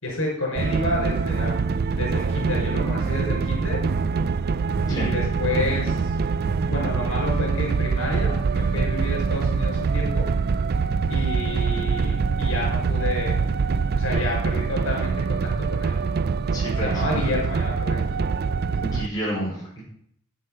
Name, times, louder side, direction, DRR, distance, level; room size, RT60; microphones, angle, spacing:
voice 1, 0.0-1.5 1.9-3.8 4.9-6.1 6.7-10.3 11.1-13.4 13.9-15.4 15.7-16.0 16.8-18.0, left 1 dB, 65° left, -2 dB, 5.7 m, -29 dB
sound 1, 0.6-19.1, right 5 dB, 45° right, 0.4 m, -24 dB
voice 2, 16.5-16.9 18.8-19.8, right 1 dB, 20° left, -5 dB, 5.2 m, -29 dB
9.9 x 9.7 x 5.7 m, 0.68 s
head